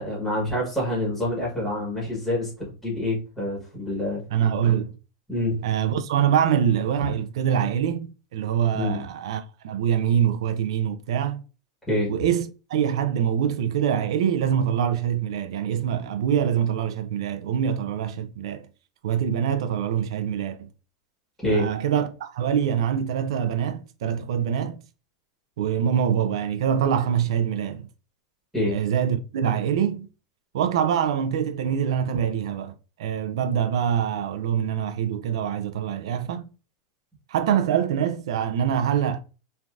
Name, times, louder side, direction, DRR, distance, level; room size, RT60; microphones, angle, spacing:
voice 1, 0.0-2.5 2.8-4.2 5.3-5.6 7.0-7.1 8.7-9.0 11.9-12.1 21.4-21.7 28.5-28.8, left 1 dB, 5° left, 1.0 m, -26 dB
voice 2, 4.3-4.9 5.6-11.4 12.1-18.7 19.0-20.7 21.5-24.8 25.6-27.9 28.7-30.1 30.5-36.5 37.3-39.2, right 8 dB, 70° right, 0.3 m, -24 dB
3.1 x 2.5 x 2.3 m
supercardioid pair, 180°, 3 cm